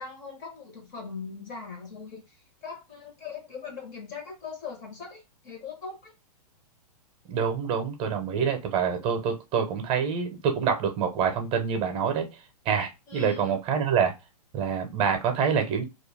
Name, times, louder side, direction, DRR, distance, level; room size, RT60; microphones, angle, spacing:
voice 1, 0.0-6.1 13.1-13.6, left 5 dB, 40° left, 0.9 m, -40 dB
voice 2, 7.3-12.3 12.7-14.1 14.5-15.8, right 7 dB, 30° right, 0.7 m, -26 dB
2.4 x 2.0 x 3.2 m
hypercardioid pair, 130°, 20 cm